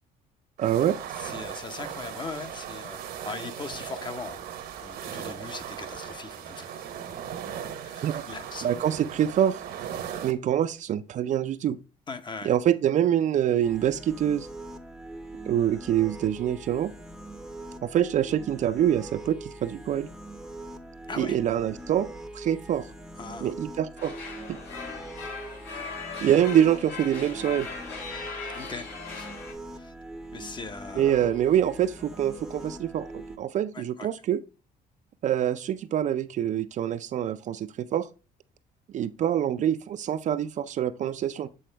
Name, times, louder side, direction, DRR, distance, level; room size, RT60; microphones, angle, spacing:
voice 1, 0.6-1.0 8.0-8.2 8.6-9.6 10.2-11.8 12.4-14.5 15.4-16.9 17.8-20.1 21.2-22.1 22.3-22.9 23.4-24.1 26.2-27.7 31.0-34.4 35.2-38.1 38.9-41.5, right 10 dB, 45° right, 0.4 m, -25 dB
sound 1, 0.6-10.3, right 9 dB, 70° right, 0.9 m, -38 dB
voice 2, 1.2-4.4 4.8-6.8 7.8-8.7 12.1-12.6 21.1-21.4 23.2-23.5 28.5-29.3 29.7-29.9 30.3-31.3 33.7-34.1, left 4 dB, 25° left, 0.7 m, -40 dB
sound 2, 13.6-33.4, right 1 dB, 5° right, 0.7 m, -42 dB
sound 3, 24.0-29.5, left 4 dB, 75° left, 2.2 m, -39 dB
7.7 x 3.7 x 3.2 m
cardioid pair, 110°, 17 cm